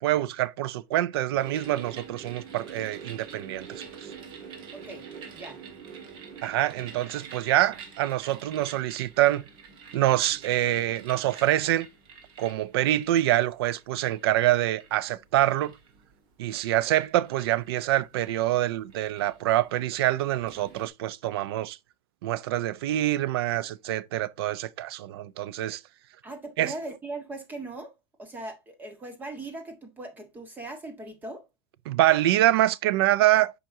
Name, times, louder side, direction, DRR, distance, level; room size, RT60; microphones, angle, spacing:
voice 1, 0.0-3.8 6.4-9.4 9.9-11.9 12.4-15.8 16.4-21.8 22.2-25.8 26.6-26.7 31.9-33.5, right 14 dB, 75° right, 0.5 m, -25 dB
sound 1, 1.4-20.9, right 6 dB, 40° right, 1.8 m, -46 dB
voice 2, 4.7-5.1 5.3-5.6 26.2-27.9 28.2-31.4, right 2 dB, 15° right, 1.4 m, -39 dB
7.7 x 5.1 x 2.7 m
supercardioid pair, 155°, 13 cm